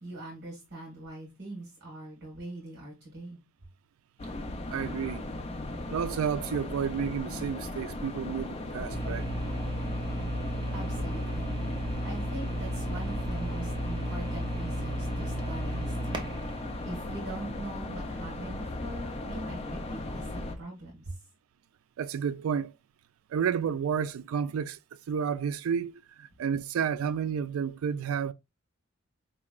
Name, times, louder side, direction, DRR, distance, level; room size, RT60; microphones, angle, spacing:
voice 1, 0.0-3.4 8.7-8.8 10.7-11.5 11.7-21.2, right 1 dB, 50° right, 1.4 m, -42 dB
sound 1, 4.2-20.6, left 2 dB, 30° left, 0.5 m, -37 dB
voice 2, 4.7-5.2 5.9-9.3 22.0-22.7 23.3-24.8 25.1-28.3, right 7 dB, 75° right, 0.3 m, -31 dB
sound 2, 8.9-17.8, right 1 dB, 20° right, 0.5 m, -34 dB
4.3 x 3.0 x 2.3 m
head